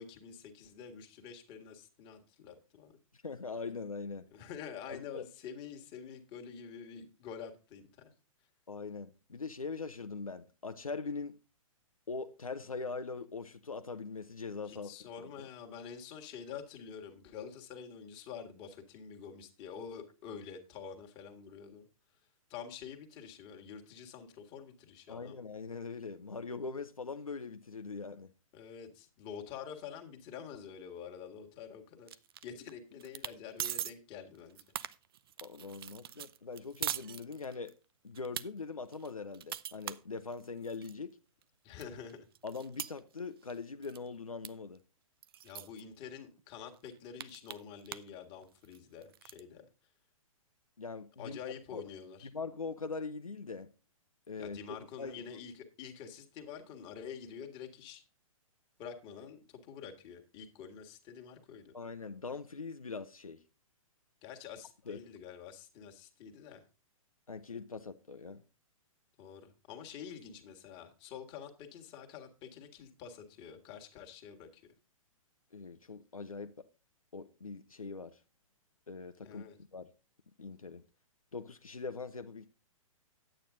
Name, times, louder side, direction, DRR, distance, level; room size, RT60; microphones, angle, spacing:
voice 1, 0.0-3.0 4.3-8.1 14.7-21.9 22.5-25.4 28.5-34.6 41.6-42.3 45.4-49.7 51.2-52.3 54.4-58.0 58.8-61.7 64.2-66.6 69.2-74.6 79.2-79.6, left 7 dB, 25° left, 1.9 m, -47 dB
voice 2, 3.1-4.3 4.9-5.3 8.7-11.4 12.1-14.9 15.4-15.5 25.1-28.3 35.4-37.7 38.0-41.2 42.4-44.8 50.8-51.4 51.7-51.8 52.3-53.7 54.3-55.2 61.7-63.4 64.9-65.0 67.3-68.4 75.5-76.7 77.1-78.2 78.9-79.9 80.4-80.8 81.3-82.5, left 4 dB, 80° left, 0.8 m, -42 dB
sound 1, 32.1-32.7 33.0-33.3 33.6-33.9 34.4-37.7 38.1-38.4 38.9-40.9 41.4-41.5 41.8-43.6 43.8-44.1 44.4-44.5 44.8-44.9 45.2-45.8 46.4-46.5 46.7-48.1 48.4-49.4, right 11 dB, 45° right, 0.5 m, -41 dB
10.0 x 9.0 x 3.8 m
figure-of-eight pair, 115°, 18 cm